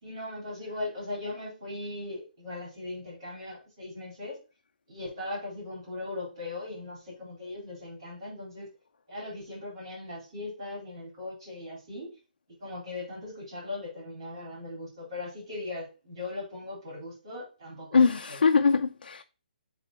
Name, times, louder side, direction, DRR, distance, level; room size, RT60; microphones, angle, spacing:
voice 1, 0.0-4.4 4.9-8.7 9.1-12.1 12.6-18.4, left 2 dB, 35° right, 4.0 m, -39 dB
voice 2, 17.9-19.2, left 5 dB, 90° left, 0.7 m, -22 dB
6.0 x 3.9 x 5.5 m
hypercardioid pair, 180°, 5 cm